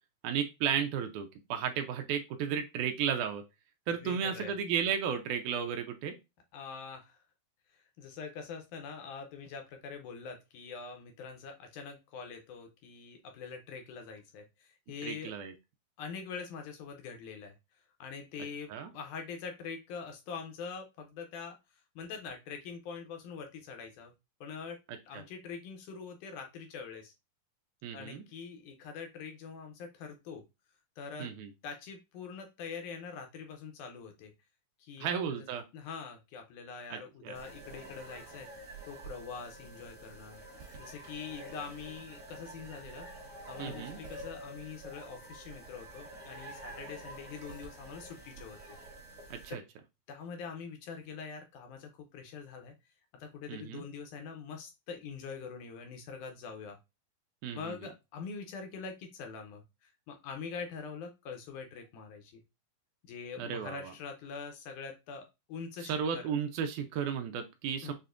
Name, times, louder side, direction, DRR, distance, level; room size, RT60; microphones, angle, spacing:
voice 1, 0.2-3.4 3.9-6.2 15.0-15.5 18.7-18.9 25.1-25.2 27.8-28.2 31.2-31.5 35.0-35.6 36.9-37.4 43.6-44.0 49.3-49.6 53.5-53.8 57.4-57.8 63.4-63.9 65.9-67.9, right 7 dB, 85° right, 6 dB, 1.7 m, -34 dB
voice 2, 4.0-4.6 6.5-7.2 7.7-15.3 16.0-21.6 22.0-24.1 24.4-24.8 25.1-27.1 27.9-30.4 31.0-31.3 31.6-34.3 34.8-35.4 35.7-38.5 38.9-40.4 40.8-43.1 43.5-48.8 49.5-49.6 50.1-52.7 53.2-56.8 57.5-62.4 63.0-66.3 67.8-67.9, left 5 dB, 80° left, 4 dB, 1.9 m, -44 dB
alien girls chorus modulated voices, 37.3-49.5, right 1 dB, 55° right, 1.8 m, -48 dB
6.5 x 2.5 x 2.4 m, 0.25 s
omnidirectional pair, 4.0 m